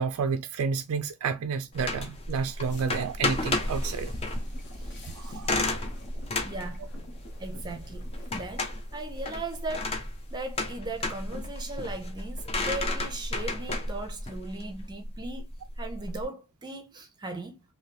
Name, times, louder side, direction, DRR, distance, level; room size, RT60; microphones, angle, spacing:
voice 1, 0.0-4.1 5.1-5.8, right 5 dB, 90° right, 0.4 m, -30 dB
sound 1, 1.7-16.2, left 2 dB, 25° left, 0.6 m, -33 dB
sound 2, 2.7-10.7, left 1 dB, 55° left, 1.0 m, -49 dB
voice 2, 4.9-5.4 6.4-6.9 7.4-9.9 10.3-15.5 15.8-17.6, right 2 dB, 20° right, 0.6 m, -38 dB
3.0 x 2.8 x 2.9 m
head